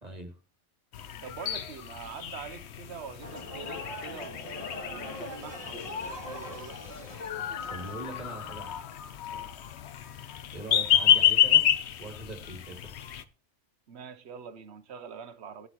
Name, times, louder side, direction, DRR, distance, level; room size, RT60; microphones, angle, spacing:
voice 1, 0.0-0.4 7.7-8.9 10.5-13.0, right 2 dB, 35° right, 2.5 m, -42 dB
sound 1, 0.9-13.2, left 10 dB, 65° left, 0.9 m, -29 dB
voice 2, 1.2-7.5 9.3-9.5 13.9-15.7, right 7 dB, 65° right, 1.0 m, -45 dB
sound 2, 3.2-8.9, left 2 dB, 30° left, 2.3 m, -41 dB
18.0 x 7.9 x 3.0 m
omnidirectional pair, 1.2 m